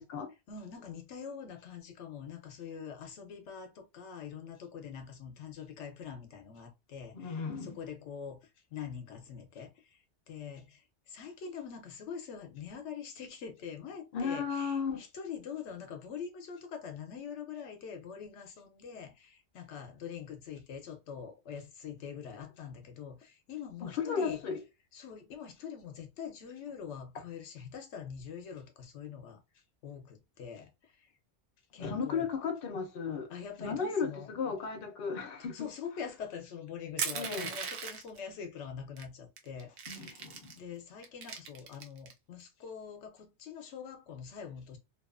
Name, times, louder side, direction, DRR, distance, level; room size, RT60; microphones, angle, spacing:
voice 1, 0.5-24.4 24.9-31.1 31.7-32.3 33.3-34.3 35.5-40.3 40.6-44.8, left 7 dB, 85° left, 0.9 m, -44 dB
voice 2, 7.1-7.8 14.1-15.0 23.8-24.6 31.8-33.3 33.6-35.6 37.1-37.5 39.9-40.6, left 5 dB, 60° left, 0.8 m, -35 dB
Crushing, 37.0-38.2 39.0-39.1 39.4-40.6 41.0-42.1, right 6 dB, 75° right, 0.9 m, -38 dB
2.7 x 2.3 x 2.3 m
omnidirectional pair, 1.2 m